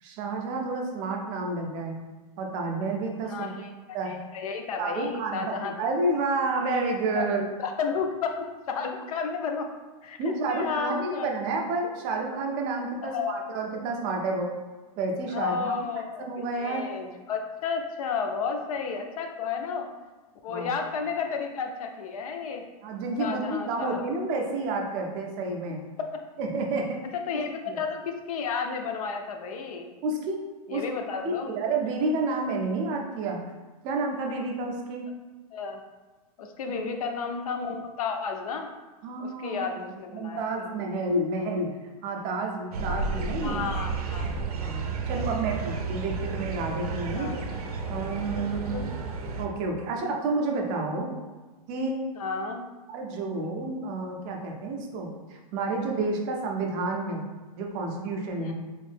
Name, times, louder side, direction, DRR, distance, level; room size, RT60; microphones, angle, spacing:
voice 1, 0.0-2.0 2.4-3.5 3.9-4.2 4.8-7.5 10.2-14.5 15.0-15.7 16.2-16.9 20.5-20.7 22.8-25.8 26.4-27.0 27.7-27.8 30.0-30.4 30.7-30.8 31.2-33.4 33.8-35.1 36.7-36.9 39.0-39.7 40.1-41.7 42.0-43.6 44.6-47.3 47.9-48.8 49.4-51.1 51.7-52.0 52.9-57.2 57.5-58.5, right 3 dB, 25° right, 1 dB, 0.4 m, -30 dB
voice 2, 3.3-3.7 4.1-5.7 7.1-7.3 7.6-9.7 10.0-10.2 10.5-11.3 13.0-13.4 15.3-19.9 20.4-22.7 23.2-24.1 26.0-26.1 27.1-29.9 30.7-31.5 35.5-35.8 36.4-38.7 39.2-40.7 43.4-44.8 47.1-47.6 48.4-48.9 52.2-52.7 58.4-58.5, left 5 dB, 70° left, 5 dB, 0.5 m, -32 dB
sound 1, 42.7-49.5, right 4 dB, 85° right, 0.6 m, -32 dB
3.1 x 2.6 x 3.3 m, 1.2 s
supercardioid pair, 165°, 19 cm